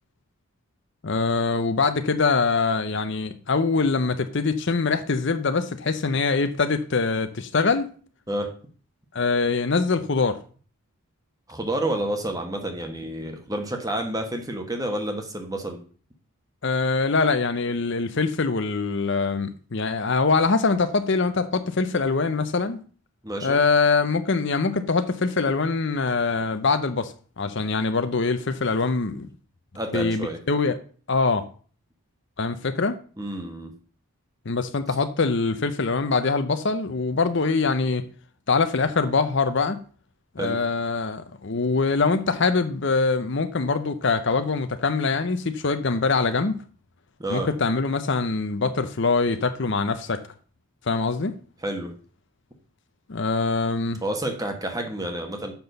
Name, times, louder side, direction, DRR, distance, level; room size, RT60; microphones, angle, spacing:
voice 1, 1.0-7.9 9.1-10.4 16.6-22.8 23.4-29.3 29.9-30.8 31.1-31.5 32.4-33.0 34.5-38.0 38.5-39.8 40.4-46.6 47.3-50.2 50.9-51.3 53.1-54.0, left 4 dB, 55° left, 0.7 m, -23 dB
voice 2, 11.5-15.8 23.2-23.6 29.7-30.4 33.2-33.7 40.4-40.6 47.2-47.5 51.6-51.9 54.0-55.5, right 1 dB, 15° right, 1.4 m, -29 dB
7.0 x 6.1 x 6.8 m
head